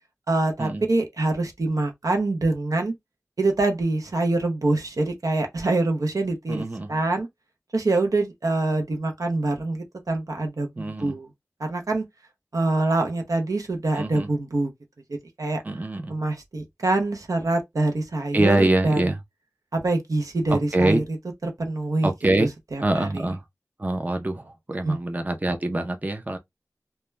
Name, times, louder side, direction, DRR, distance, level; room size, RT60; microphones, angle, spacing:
voice 1, 0.3-2.9 3.4-7.3 7.7-11.3 11.6-12.0 12.5-14.7 15.4-15.6 16.1-19.0 19.7-21.0 21.4-22.1 22.4-23.2 24.8-25.0, right 2 dB, 85° right, 0.6 m, -25 dB
voice 2, 6.5-6.9 10.8-11.2 14.0-14.3 15.6-16.1 18.3-19.2 20.5-21.0 22.0-22.5 22.8-23.4 23.8-26.4, right 2 dB, 30° right, 0.5 m, -24 dB
2.2 x 2.1 x 3.1 m
wide cardioid pair, 60°, 6 cm